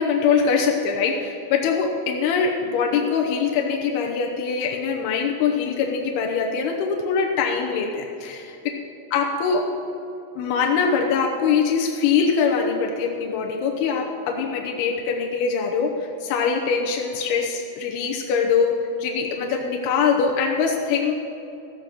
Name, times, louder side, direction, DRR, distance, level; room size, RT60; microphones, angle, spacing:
voice 1, 0.0-8.6 9.1-9.6 10.4-15.9 16.2-18.7 19.0-21.2, left 6 dB, 85° left, 1 dB, 2.2 m, -23 dB
14.5 x 6.9 x 7.6 m, 2.8 s
omnidirectional pair, 5.9 m